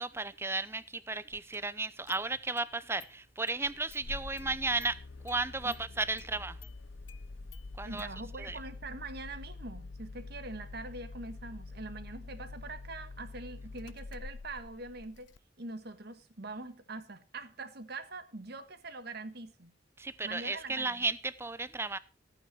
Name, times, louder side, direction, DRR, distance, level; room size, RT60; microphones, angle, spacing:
voice 1, 0.0-6.6 7.8-8.1 8.4-8.6 20.0-22.0, right 3 dB, 15° right, 0.7 m, -34 dB
Engine starting, 1.5-1.6 2.1-2.7 3.0-3.1 3.5-15.4, left 3 dB, 80° left, 0.7 m, -46 dB
voice 2, 7.8-15.3 15.6-19.7 20.2-21.1, right 2 dB, 60° right, 1.5 m, -43 dB
14.5 x 9.0 x 4.6 m
head